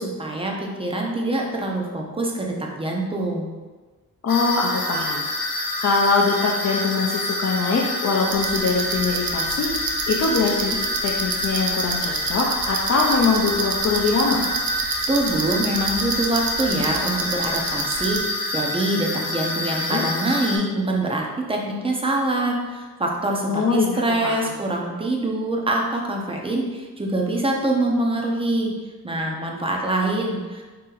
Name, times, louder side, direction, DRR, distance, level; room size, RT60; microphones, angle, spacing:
voice 1, 0.0-3.5 15.1-18.2 18.5-28.7 29.0-30.6, right 1 dB, 15° right, 0 dB, 0.5 m, -24 dB
voice 2, 4.2-14.4 19.7-20.0 23.5-24.5, left 4 dB, 45° left, -3 dB, 0.5 m, -23 dB
sound 1, 4.3-20.6, left 1 dB, 85° left, 0.8 m, -27 dB
sound 2, 8.3-18.2, right 5 dB, 80° right, 0.6 m, -29 dB
4.1 x 2.9 x 3.8 m, 1.3 s
wide cardioid pair, 155°, 35 cm